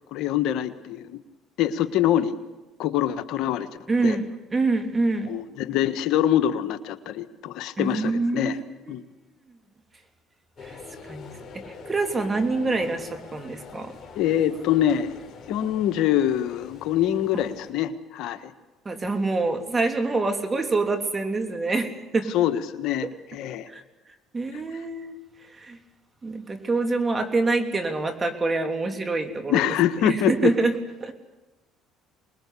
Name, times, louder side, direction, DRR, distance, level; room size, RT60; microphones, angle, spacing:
voice 1, 0.1-1.2 1.6-2.3 2.8-3.7 4.0-4.2 5.3-8.6 8.9-9.0 14.1-15.1 15.5-18.5 22.3-23.7 29.5-30.5, left 11 dB, 70° left, 9 dB, 1.4 m, -24 dB
voice 2, 3.9-5.3 7.8-9.0 10.6-14.0 18.8-22.3 23.7-23.8 24.3-25.8 26.2-29.7 30.0-30.7 31.0-31.1, right 3 dB, 25° right, 6 dB, 3.3 m, -26 dB
sound 1, 10.6-17.7, left 4 dB, 40° left, 4.6 m, -44 dB
25.0 x 21.0 x 8.5 m, 1.1 s
supercardioid pair, 85°, 0 cm